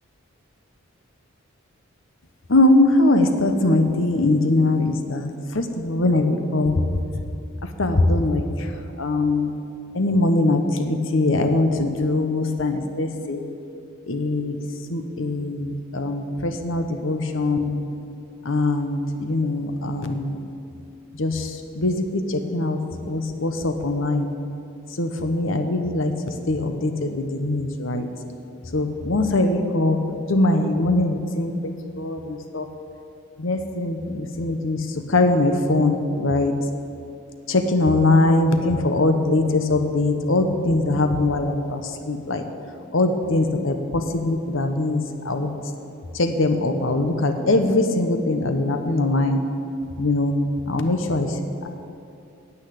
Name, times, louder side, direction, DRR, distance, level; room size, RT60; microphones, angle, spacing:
voice 1, 2.5-5.3 5.5-6.7 7.8-8.4 9.0-9.5 10.0-13.4 14.1-14.5 14.9-17.8 18.5-20.4 21.2-21.3 21.8-22.0 22.5-22.8 23.0-24.3 25.0-26.1 26.5-28.1 28.7-30.0 30.3-31.5 32.0-32.2 32.5-32.6 33.4-34.8 35.1-36.5 37.5-41.8 42.1-42.4 42.9-43.7 44.1-45.0 45.3-45.5 46.2-49.4 50.0-50.3 50.7-51.3, left 2 dB, 65° left, 7 dB, 1.1 m, -21 dB
9.9 x 8.3 x 8.3 m, 2.6 s
head